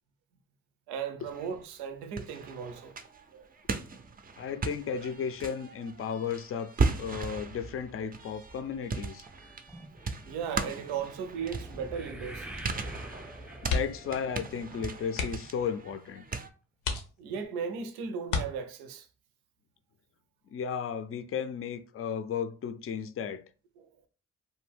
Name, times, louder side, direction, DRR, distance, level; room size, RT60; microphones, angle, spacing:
voice 1, 0.9-3.0 3.3-3.5 10.2-12.5 17.2-19.1 23.8-23.9, right 6 dB, 80° right, 0.6 m, -36 dB
sound 1, 1.3-1.9 2.2-16.5, right 4 dB, 25° right, 0.4 m, -37 dB
voice 2, 4.4-9.2 13.6-16.2 20.5-23.4, left 7 dB, 35° left, 0.5 m, -34 dB
sound 2, 9.3-15.7 15.9-16.4 17.0-17.1 17.4-17.5, right 1 dB, ahead, 0.8 m, -45 dB
sound 3, 13.6-14.2 14.5-14.6 15.1-15.6 16.2-16.3 16.8-17.6 18.2-19.0 20.6-20.9 21.3-21.4, left 4 dB, 80° left, 0.7 m, -33 dB
2.6 x 2.1 x 3.3 m
hypercardioid pair, 45°, 38 cm